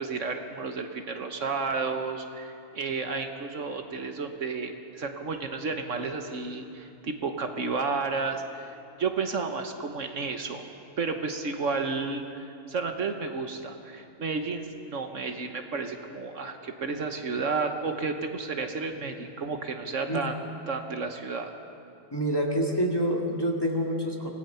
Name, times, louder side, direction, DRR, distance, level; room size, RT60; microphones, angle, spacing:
voice 1, 0.0-8.7 9.0-10.6 11.0-20.4 20.7-21.5, right 4 dB, 65° right, 5 dB, 1.5 m, -32 dB
voice 2, 22.1-24.3, equal, 15° left, 0 dB, 1.9 m, -27 dB
26.0 x 18.0 x 5.7 m, 2.7 s
omnidirectional pair, 1.4 m